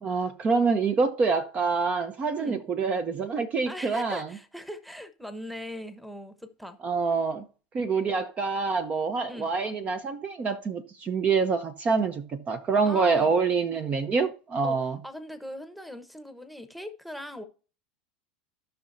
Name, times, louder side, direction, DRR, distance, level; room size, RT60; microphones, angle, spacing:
voice 1, 0.0-4.3 6.8-7.4 7.7-15.0, right 4 dB, 30° right, 0.9 m, -26 dB
voice 2, 3.7-6.8 9.3-9.5 12.8-13.3 14.6-14.8 15.0-17.4, left 1 dB, ahead, 1.2 m, -40 dB
16.5 x 5.7 x 2.7 m
hypercardioid pair, 100°, 4 cm